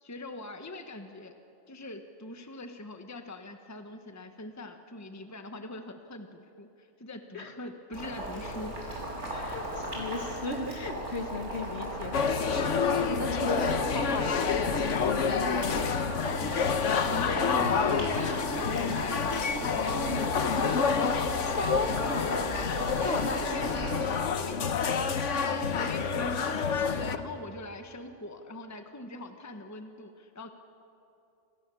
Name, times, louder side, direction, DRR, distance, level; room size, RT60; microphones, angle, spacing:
voice 1, 0.0-1.4 1.7-8.8 9.3-9.5 17.1-20.3 23.0-23.7 24.3-25.1 25.5-30.5, left 2 dB, 15° left, 6 dB, 1.2 m, -42 dB
Boiling, 7.9-24.1, right 1 dB, 70° right, 7.0 m, -37 dB
voice 2, 9.4-16.1 20.1-20.3 21.4-22.3 23.0-23.5, left 3 dB, 60° left, 5 dB, 2.2 m, -35 dB
sound 1, 12.1-27.2, left 6 dB, 75° left, 1.4 m, -28 dB
28.0 x 28.0 x 7.0 m, 2.8 s
omnidirectional pair, 1.3 m